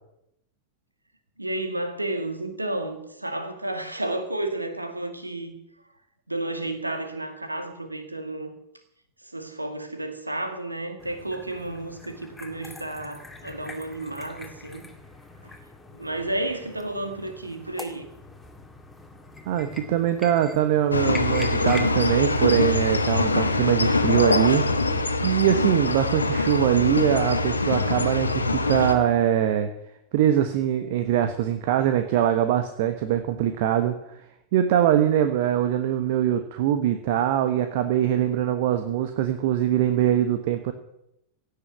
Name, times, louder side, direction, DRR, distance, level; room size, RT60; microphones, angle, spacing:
voice 1, 1.4-5.5 6.3-8.5 9.2-14.9 15.4-15.5 15.9-18.1, right 1 dB, 85° right, 2.1 m, -32 dB
sound 1, 11.0-23.5, left 2 dB, 10° left, 2.1 m, -43 dB
voice 2, 19.5-24.7 25.2-29.7 30.1-34.0 34.5-40.7, right 11 dB, 50° right, 1.2 m, -22 dB
sound 2, 20.9-28.9, left 3 dB, 80° left, 1.3 m, -23 dB
16.5 x 6.9 x 9.2 m
figure-of-eight pair, 90°, 0 cm